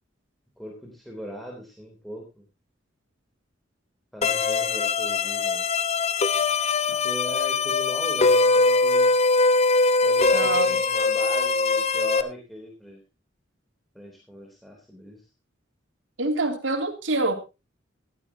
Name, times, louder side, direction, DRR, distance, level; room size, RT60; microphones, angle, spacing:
voice 1, 0.6-2.4 4.1-5.9 6.9-9.1 10.0-13.0 13.9-15.2, equal, ahead, 3.3 m, -39 dB
sound 1, 4.2-12.2, left 3 dB, 35° left, 1.0 m, -22 dB
voice 2, 10.3-10.8 16.2-17.3, right 2 dB, 75° right, 2.9 m, -25 dB
15.5 x 12.5 x 2.8 m
head